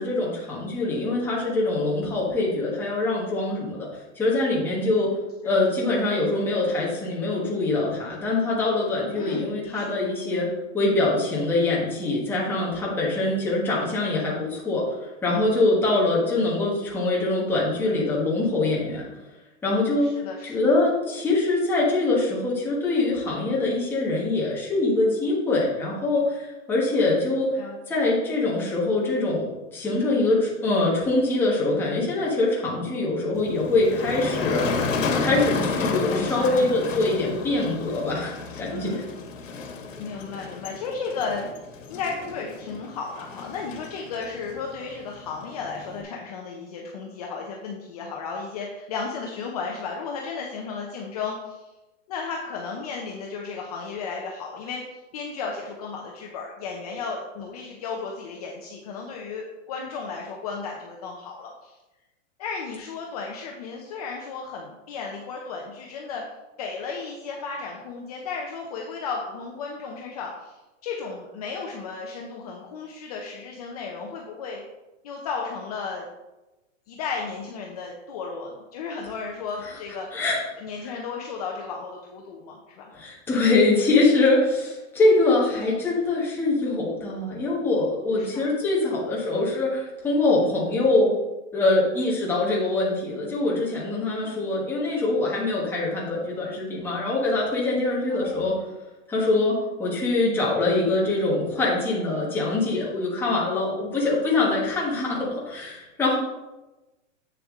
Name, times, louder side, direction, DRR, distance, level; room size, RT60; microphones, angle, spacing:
voice 1, 0.0-3.9 4.1-5.1 5.4-10.5 10.7-19.1 19.6-20.1 20.4-27.5 27.9-34.7 35.2-39.0 80.1-80.4 80.8-80.9 82.9-91.1 91.5-98.5 99.1-106.2, left 2 dB, 5° left, -5 dB, 1.2 m, -24 dB
voice 2, 9.1-10.0 20.0-20.5 27.6-27.8 36.1-36.8 38.7-39.1 40.0-41.6 41.9-51.6 52.1-61.8 62.4-66.2 66.6-70.5 70.8-74.6 75.0-76.1 76.9-80.1 80.6-82.9 88.2-88.5 94.2-94.4 98.1-98.6 105.1-105.3, left 5 dB, 30° left, 0 dB, 0.7 m, -34 dB
Motor vehicle (road), 33.3-46.0, left 4 dB, 85° left, 1.6 m, -32 dB
8.0 x 6.9 x 3.6 m, 1.1 s
supercardioid pair, 170°, 38 cm